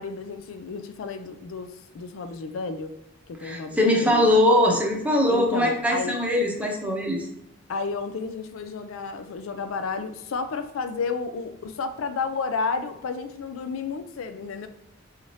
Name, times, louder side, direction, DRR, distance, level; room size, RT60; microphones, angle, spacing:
voice 1, 0.0-2.9 3.3-4.3 5.3-6.2 7.7-14.7, left 4 dB, 85° left, 0.4 m, -32 dB
voice 2, 3.4-7.3, left 1 dB, 5° right, 0.7 m, -21 dB
4.9 x 2.8 x 3.1 m
head